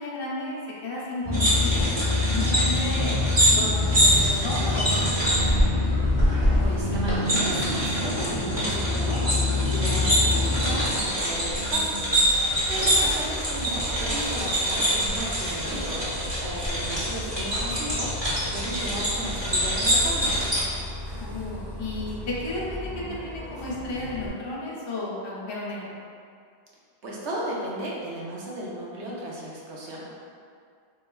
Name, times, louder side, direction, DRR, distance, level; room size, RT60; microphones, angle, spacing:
voice 1, 0.0-1.9 2.3-5.4 12.6-12.8 21.2-25.9, left 2 dB, 40° left, -6 dB, 0.4 m, -33 dB
sound 1, 1.2-10.9, left 2 dB, 55° left, 0.8 m, -26 dB
sound 2, 1.3-20.6, equal, 30° right, 0.7 m, -25 dB
voice 2, 6.3-12.1 12.7-20.4 27.0-30.1, right 1 dB, 85° right, -5 dB, 1.0 m, -35 dB
Bus, 10.2-24.3, left 1 dB, 45° right, 1.2 m, -37 dB
3.2 x 3.0 x 2.2 m, 2.3 s
omnidirectional pair, 1.1 m